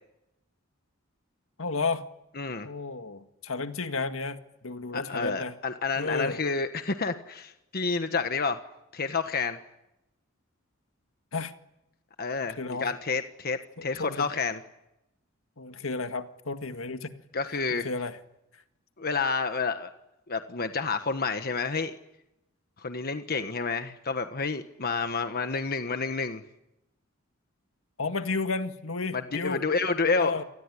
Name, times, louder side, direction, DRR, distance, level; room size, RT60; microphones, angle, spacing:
voice 1, 1.6-2.0 2.6-4.4 4.6-5.5 6.0-6.4 11.3-11.5 12.4-12.9 13.8-14.3 15.6-17.1 17.7-18.2 28.0-29.6 30.2-30.4, left 3 dB, 75° left, 8 dB, 1.9 m, -32 dB
voice 2, 2.4-2.7 4.9-8.6 8.9-9.6 12.2-14.6 17.3-17.9 19.0-19.9 20.3-21.9 22.8-26.4 29.1-30.4, left 4 dB, 50° left, 8 dB, 1.4 m, -29 dB
28.5 x 20.5 x 9.9 m, 0.89 s
head